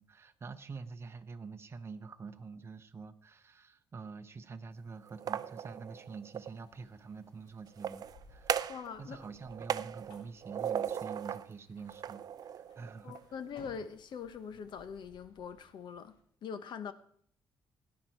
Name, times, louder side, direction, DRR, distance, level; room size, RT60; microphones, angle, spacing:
voice 1, 0.0-13.1, right 5 dB, 30° right, 0.8 m, -47 dB
sound 1, 5.1-6.5 7.7-8.9 9.2-11.5 11.9-13.2, right 9 dB, 45° right, 0.4 m, -37 dB
sound 2, 6.4-16.2, left 2 dB, 75° left, 3.3 m, -62 dB
voice 2, 8.7-9.2 13.0-16.9, left 7 dB, 60° left, 1.0 m, -43 dB
17.0 x 10.5 x 4.6 m
cardioid pair, 150°, 9 cm